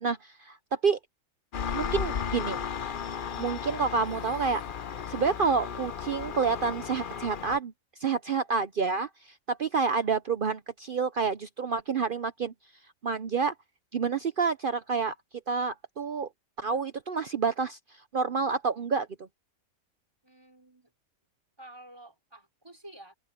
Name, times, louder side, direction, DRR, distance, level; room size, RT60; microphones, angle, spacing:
voice 1, 0.0-1.0 1.7-2.6 3.4-4.6 5.0-7.7 8.0-12.5 13.0-13.5 13.9-15.1 15.5-16.3 16.6-17.8 18.1-19.1, right 5 dB, 50° right, 0.7 m, -28 dB
Engine, 1.5-7.6, left 7 dB, 45° left, 0.8 m, -35 dB
voice 2, 20.2-20.9 21.6-23.1, right 1 dB, 15° right, 4.9 m, -50 dB
omnidirectional pair, 1.4 m